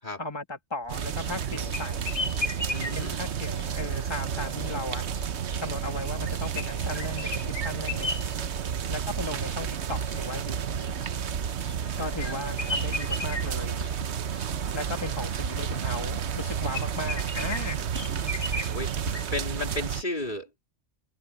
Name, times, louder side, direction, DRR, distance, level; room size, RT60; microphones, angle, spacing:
voice 1, 0.2-2.0 2.9-5.0 5.6-8.2 8.9-10.9 12.0-13.8 14.7-17.9, left 2 dB, 25° left, 2.1 m, -36 dB
sound 1, 0.8-19.9, right 3 dB, 70° right, 2.2 m, -44 dB
sound 2, 0.9-20.0, right 8 dB, 90° right, 1.2 m, -31 dB
sound 3, 1.0-19.3, left 2 dB, 90° left, 6.7 m, -38 dB
voice 2, 2.7-3.2 8.8-8.9 18.5-18.9 19.3-20.6, left 2 dB, 45° left, 3.3 m, -34 dB
omnidirectional pair, 1.1 m